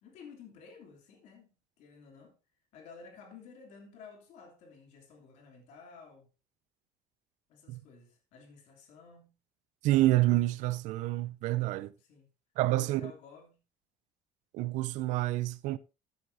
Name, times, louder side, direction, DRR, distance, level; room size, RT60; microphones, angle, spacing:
voice 1, 0.0-1.5 1.8-2.4 2.7-6.3 7.5-9.4 12.0-12.3 12.7-13.6, left 5 dB, 60° left, 3.0 m, -53 dB
voice 2, 9.8-11.9 12.6-13.1 14.5-15.8, right 16 dB, 70° right, 0.5 m, -28 dB
13.5 x 8.2 x 2.7 m
cardioid pair, 160°, 13 cm